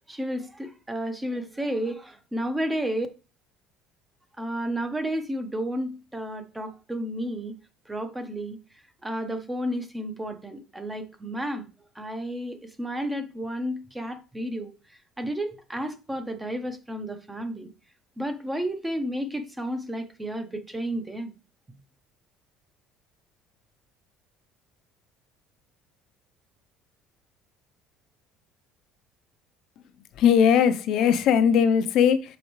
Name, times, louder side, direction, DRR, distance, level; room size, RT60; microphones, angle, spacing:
voice 1, 0.1-3.1 4.4-7.5 7.9-8.6 9.0-11.7 11.9-14.7 15.2-17.7 18.2-21.3, equal, 10° right, 0.8 m, -32 dB
voice 2, 30.2-32.4, left 8 dB, 60° left, 0.6 m, -19 dB
6.2 x 5.0 x 3.1 m
cardioid pair, 140°, 0 cm